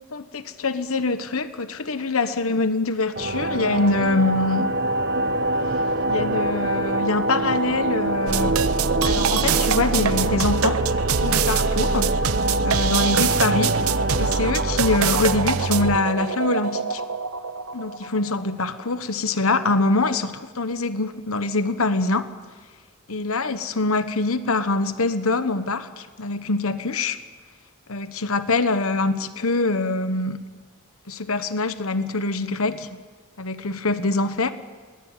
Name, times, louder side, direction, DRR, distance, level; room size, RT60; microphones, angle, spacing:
voice 1, 0.1-4.7 6.1-8.5 9.0-10.8 11.2-12.1 12.6-13.7 14.2-17.0 17.7-22.3 23.1-27.2 27.9-30.5 31.1-33.0 33.4-34.5, left 3 dB, 70° left, 11 dB, 1.2 m, -24 dB
sound 1, 3.2-16.7, right 1 dB, 45° right, 1.3 m, -25 dB
sound 2, 8.3-18.4, right 6 dB, 80° right, 0.8 m, -24 dB
22.0 x 18.5 x 9.2 m, 1.5 s
head